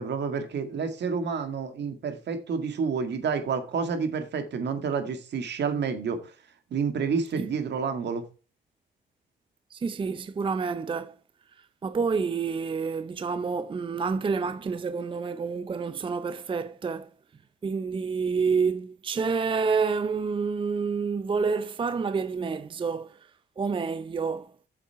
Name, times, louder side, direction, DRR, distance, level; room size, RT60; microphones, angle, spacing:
voice 1, 0.0-6.2 6.7-8.2, right 5 dB, 65° right, 1.9 m, -29 dB
voice 2, 9.7-11.1 11.6-17.1 17.6-23.2 23.6-24.5, right 5 dB, 25° right, 0.5 m, -28 dB
7.4 x 7.3 x 4.7 m
cardioid pair, 95°, 20 cm